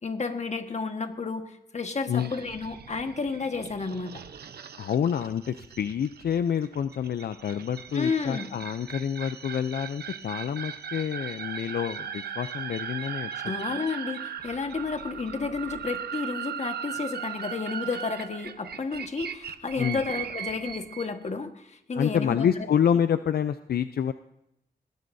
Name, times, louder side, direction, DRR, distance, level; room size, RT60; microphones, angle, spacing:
voice 1, 0.0-4.2 7.9-8.6 13.4-22.7, left 4 dB, 45° left, 6 dB, 1.5 m, -32 dB
sound 1, 2.2-21.1, right 8 dB, 85° right, 0.9 m, -38 dB
voice 2, 4.8-13.3 19.8-20.0 22.0-24.1, left 8 dB, 75° left, 10 dB, 0.5 m, -27 dB
20.5 x 17.0 x 2.7 m, 0.82 s
wide cardioid pair, 95°, 16 cm